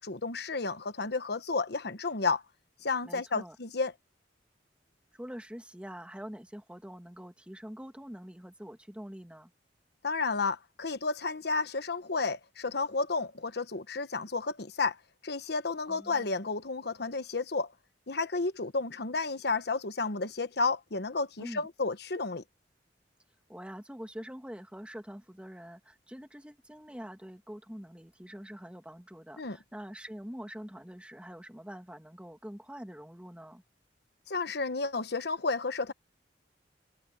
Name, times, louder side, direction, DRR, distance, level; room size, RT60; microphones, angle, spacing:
voice 1, 0.0-2.4 2.8-3.9 10.0-15.0 15.2-17.7 18.1-22.4 29.4-29.6 34.3-35.9, left 4 dB, 65° left, 1.2 m, -32 dB
voice 2, 3.0-3.6 5.1-9.5 15.9-16.4 21.4-21.7 23.5-33.6, equal, 5° right, 2.2 m, -45 dB
head